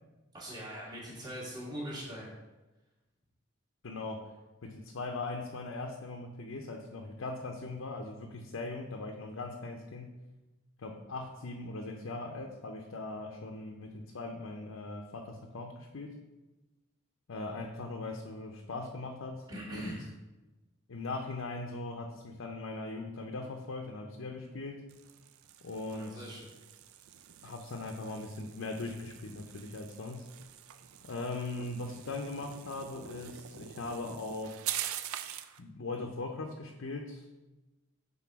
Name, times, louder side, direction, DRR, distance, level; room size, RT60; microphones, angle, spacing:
voice 1, 0.3-2.3 19.5-20.1 25.9-26.5, equal, 20° right, -5 dB, 1.6 m, -41 dB
voice 2, 3.8-4.3 4.6-10.2 10.8-16.1 17.3-20.0 20.9-24.9 25.6-26.3 27.4-30.3 31.0-34.6 35.3-37.2, left 2 dB, 70° left, 2 dB, 0.6 m, -40 dB
sound 1, 24.9-35.6, right 11 dB, 80° right, 0.4 m, -44 dB
6.0 x 3.8 x 5.9 m, 1.1 s
head